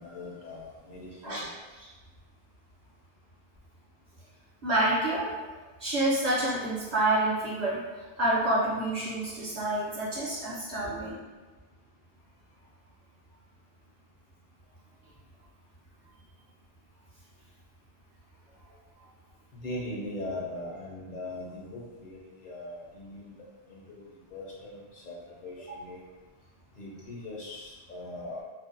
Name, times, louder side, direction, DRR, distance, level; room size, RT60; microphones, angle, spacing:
voice 1, 0.0-1.5 10.8-10.9 19.6-23.3 23.7-24.0 24.3-25.1 25.4-26.0 26.8-28.4, left 1 dB, 60° left, -5 dB, 0.7 m, -40 dB
voice 2, 4.6-5.4 5.8-7.8 8.2-11.1, right 1 dB, 50° right, -7 dB, 0.6 m, -28 dB
2.5 x 2.1 x 2.5 m, 1.3 s
omnidirectional pair, 1.1 m